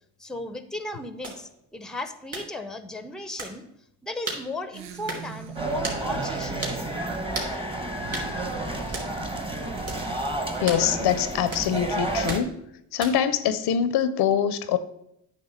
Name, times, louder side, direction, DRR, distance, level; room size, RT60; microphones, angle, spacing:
voice 1, 0.2-3.6 4.0-6.8, left 1 dB, ahead, 0.7 m, -36 dB
sound 1, 1.2-1.4 2.3-2.5 3.4-3.6 4.3-4.5 5.1-5.3 5.8-6.0 6.6-6.8 7.3-7.5 8.1-8.3 8.9-9.1 9.9-10.0 10.7-10.9 11.5-11.7 12.3-12.5 13.0-13.3, right 2 dB, 40° right, 3.3 m, -34 dB
sound 2, 4.7-12.0, right 11 dB, 75° right, 0.6 m, -42 dB
sound 3, 5.6-12.4, right 2 dB, 15° right, 1.1 m, -31 dB
voice 2, 8.6-9.0 10.6-12.6 12.9-14.8, left 9 dB, 75° left, 0.7 m, -24 dB
9.3 x 3.4 x 6.5 m
cardioid pair, 80°, 39 cm